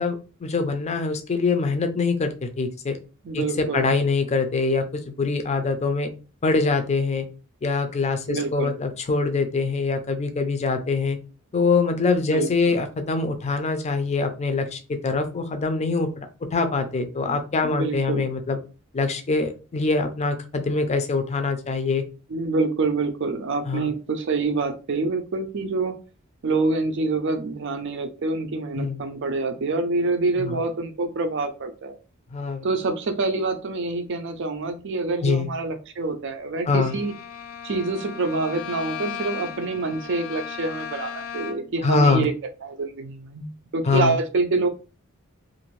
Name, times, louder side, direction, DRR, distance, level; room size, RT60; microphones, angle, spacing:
voice 1, 0.0-3.0 3.3-6.1 6.4-7.3 7.6-11.2 11.5-16.3 16.5-18.6 18.9-22.0 23.7-23.9 28.8-29.0 30.4-30.6 32.3-32.7 35.2-35.5 36.7-36.9 41.8-42.3 43.9-44.1, left 4 dB, 30° left, 7 dB, 0.5 m, -24 dB
voice 2, 3.2-3.9 8.3-8.7 12.3-12.8 17.2-18.3 22.3-25.9 26.4-31.9 32.6-37.1 37.6-42.3 42.6-44.7, right 3 dB, 60° right, 7 dB, 0.5 m, -26 dB
Bowed string instrument, 36.8-41.8, left 8 dB, 90° left, 0.4 m, -36 dB
2.5 x 2.5 x 3.1 m, 0.34 s
head